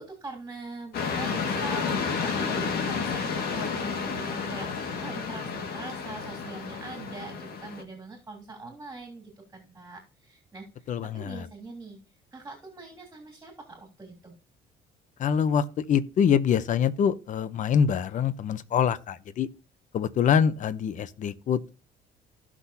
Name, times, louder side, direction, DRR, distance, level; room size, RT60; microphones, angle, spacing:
voice 1, 0.0-12.0 12.3-14.3, right 3 dB, 15° right, 3.2 m, -43 dB
sound 1, 0.9-7.8, left 5 dB, 65° left, 1.9 m, -31 dB
voice 2, 10.9-11.4 15.2-19.5 19.9-21.7, left 7 dB, 50° left, 0.8 m, -25 dB
16.0 x 6.1 x 2.8 m
cardioid pair, 110°, 17 cm